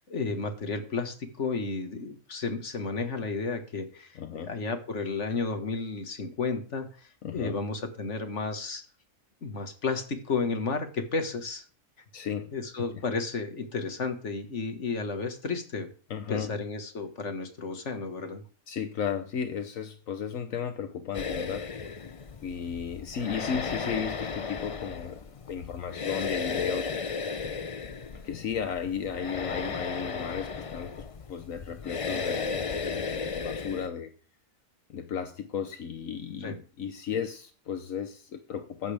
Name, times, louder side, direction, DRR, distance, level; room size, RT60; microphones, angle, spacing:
voice 1, 0.1-8.8 9.4-11.7 12.5-15.9 16.3-18.4 36.4-36.6, left 4 dB, 60° left, 2.0 m, -32 dB
voice 2, 4.1-4.5 7.2-7.5 12.1-12.5 16.1-16.5 18.7-21.7 22.4-25.2 25.5-26.9 28.2-34.1 34.9-38.9, left 7 dB, 75° left, 1.3 m, -34 dB
sound 1, 21.1-33.9, left 5 dB, 35° left, 0.5 m, -35 dB
15.0 x 11.0 x 3.5 m
omnidirectional pair, 1.4 m